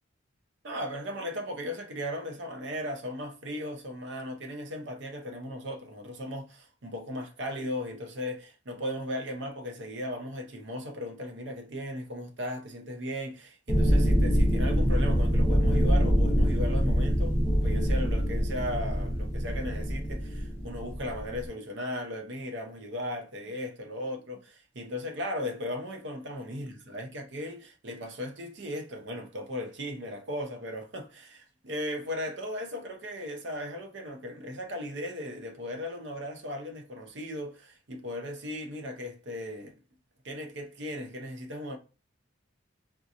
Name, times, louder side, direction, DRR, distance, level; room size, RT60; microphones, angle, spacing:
voice 1, 0.6-39.8 40.2-41.8, left 1 dB, 60° right, 0.7 m, -37 dB
sound 1, 13.7-21.5, equal, 15° right, 1.0 m, -25 dB
3.6 x 2.8 x 2.5 m
head